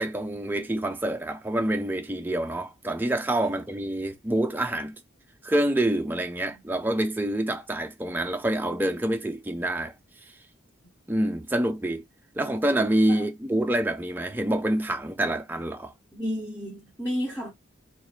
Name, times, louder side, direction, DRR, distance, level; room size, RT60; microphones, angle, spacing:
voice 1, 0.0-5.0 5.4-9.9 11.1-12.0 12.4-15.9, right 1 dB, 10° right, 0.4 m, -27 dB
voice 2, 16.1-17.5, equal, 10° left, 0.8 m, -32 dB
2.6 x 2.5 x 4.1 m
head